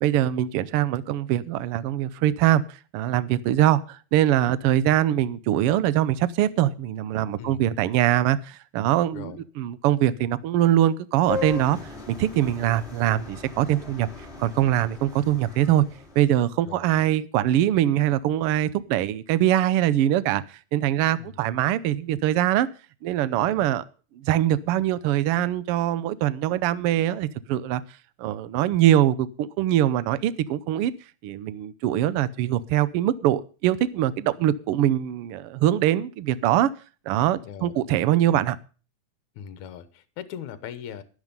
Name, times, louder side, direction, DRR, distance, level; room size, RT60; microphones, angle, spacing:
voice 1, 0.0-2.6 2.9-11.8 12.1-14.1 14.4-15.8 16.2-20.4 20.7-22.7 23.0-23.8 24.2-27.8 28.2-30.9 31.2-36.7 37.1-38.6, right 12 dB, 75° right, 1.3 m, -23 dB
voice 2, 9.1-9.4 16.6-16.9 21.2-21.4 23.3-23.7 37.4-37.7 39.4-41.0, left 9 dB, 75° left, 2.4 m, -39 dB
sound 1, 11.3-16.3, left 4 dB, 20° left, 3.7 m, -37 dB
11.5 x 11.0 x 5.3 m
omnidirectional pair, 3.4 m